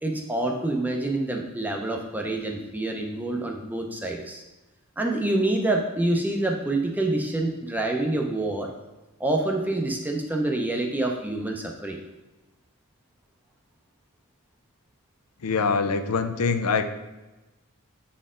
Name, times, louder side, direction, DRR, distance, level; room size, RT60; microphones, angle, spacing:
voice 1, 0.0-4.4 5.0-8.7 9.2-12.0, right 2 dB, 10° right, 1 dB, 0.6 m, -27 dB
voice 2, 15.4-16.9, left 5 dB, 90° left, 9 dB, 0.5 m, -24 dB
8.0 x 4.3 x 3.7 m, 1.1 s
head